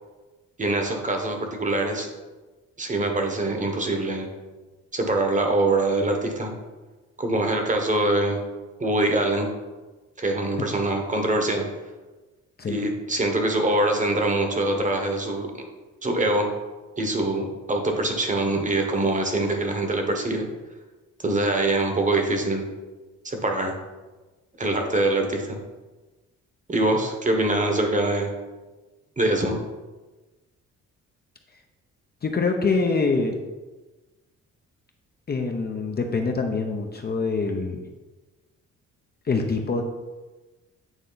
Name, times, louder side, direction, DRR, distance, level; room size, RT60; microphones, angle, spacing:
voice 1, 0.6-2.1 2.8-4.3 4.9-6.5 7.2-8.4 8.8-9.5 10.2-11.7 12.7-15.6 16.0-16.5 17.0-20.4 21.2-22.7 23.2-23.7 24.6-25.6 26.7-28.3 29.2-29.6, right 2 dB, 25° right, 3 dB, 1.1 m, -24 dB
voice 2, 32.2-33.4 35.3-37.8 39.3-39.8, left 4 dB, 30° left, 3 dB, 0.7 m, -25 dB
9.0 x 3.2 x 3.9 m, 1.2 s
cardioid pair, 90°, 30 cm